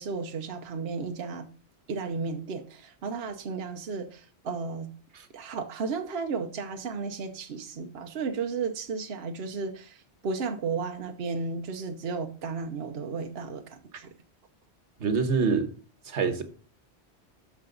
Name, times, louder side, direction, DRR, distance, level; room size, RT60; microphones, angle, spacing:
voice 1, 0.0-1.5 1.9-5.0 5.3-14.1, right 4 dB, 65° right, 1.0 m, -34 dB
voice 2, 15.0-15.7 16.0-16.4, right 5 dB, 90° right, 1.4 m, -25 dB
12.5 x 4.7 x 3.8 m
omnidirectional pair, 1.1 m